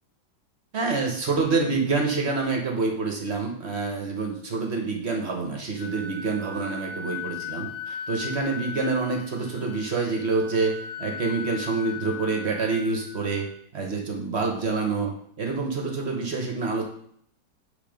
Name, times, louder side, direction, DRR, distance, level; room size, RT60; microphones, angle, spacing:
voice 1, 0.7-10.7 11.0-13.5 13.7-15.1 15.4-16.9, right 4 dB, 45° right, 1 dB, 1.0 m, -27 dB
Wind instrument woodwind instrument, 5.8-13.5, left 5 dB, 35° left, 1.6 m, -38 dB
8.2 x 3.4 x 5.1 m, 0.66 s
omnidirectional pair, 2.1 m